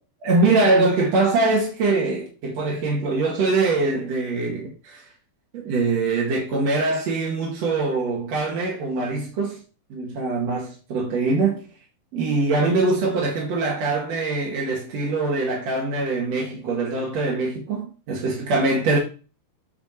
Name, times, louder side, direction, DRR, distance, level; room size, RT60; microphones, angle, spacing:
voice 1, 0.2-5.1 5.5-9.6 9.9-11.6 12.1-19.0, right 3 dB, 55° right, 2.8 m, -23 dB
8.9 x 4.5 x 4.4 m
omnidirectional pair, 3.7 m